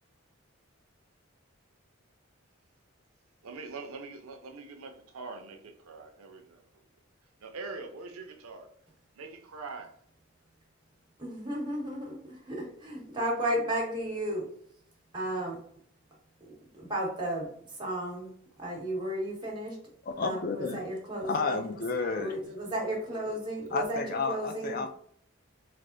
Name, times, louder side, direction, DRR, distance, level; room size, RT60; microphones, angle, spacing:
voice 1, 3.4-6.9 7.4-8.7 9.1-10.0 22.0-22.1, right 3 dB, 80° right, 0.6 m, -43 dB
voice 2, 11.2-14.5 15.1-15.6 16.4-19.8 20.2-21.6 22.2-24.9, right 1 dB, 20° right, 1.2 m, -34 dB
voice 3, 20.0-20.8 21.2-22.4 23.7-24.9, left 4 dB, 40° left, 0.4 m, -31 dB
3.3 x 2.0 x 3.7 m
head